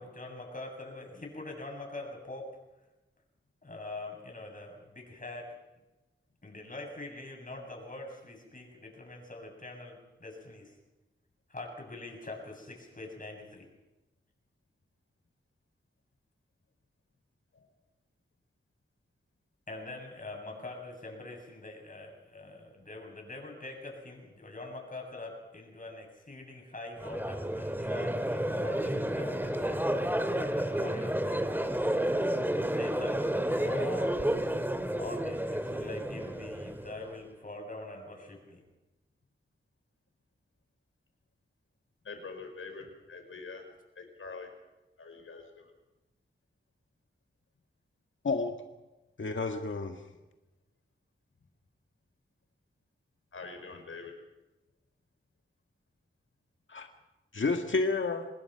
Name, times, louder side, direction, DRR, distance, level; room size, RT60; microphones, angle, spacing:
voice 1, 0.0-2.5 3.6-5.5 6.4-10.7 11.5-13.7 19.7-29.8 30.4-31.5 32.5-34.2 35.0-38.6, left 2 dB, 40° left, 2 dB, 7.7 m, -44 dB
Crowd, 27.0-37.2, right 1 dB, 10° right, 2.1 m, -31 dB
voice 2, 42.0-43.6 44.0-44.5 45.0-45.7 53.3-54.1, left 4 dB, 90° left, 4 dB, 5.3 m, -45 dB
voice 3, 49.2-49.9 56.7-56.9 57.3-58.3, left 3 dB, 70° left, 4 dB, 1.8 m, -30 dB
27.0 x 20.0 x 5.8 m, 1.0 s
wide cardioid pair, 75°, 21 cm